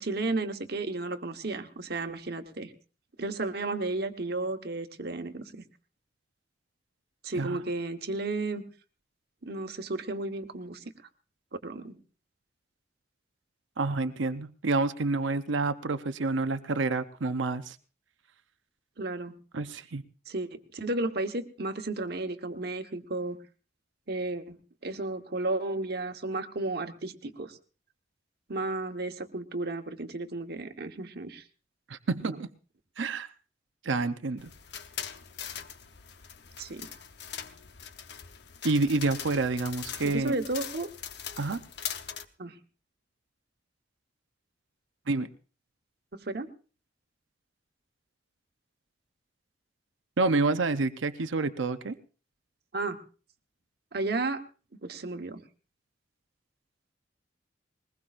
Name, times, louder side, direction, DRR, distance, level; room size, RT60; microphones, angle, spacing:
voice 1, 0.0-2.7 3.2-5.6 7.2-8.6 9.4-10.8 11.6-12.0 19.0-19.4 20.3-23.4 24.1-27.6 28.5-31.4 32.2-32.4 36.6-36.9 40.0-40.9 42.4-42.6 46.2-46.5 52.7-53.0 53.9-54.4 54.8-55.4, right 2 dB, 55° right, 6 dB, 1.2 m, -33 dB
voice 2, 13.8-17.8 19.5-20.0 31.9-32.5 33.0-33.3 33.8-34.5 38.6-40.3 41.4-41.6 45.1-45.3 50.2-51.9, right 3 dB, 90° right, 11 dB, 0.7 m, -28 dB
sound 1, 34.4-42.3, left 8 dB, 60° left, 0.9 m, -41 dB
21.5 x 20.0 x 2.5 m, 0.37 s
head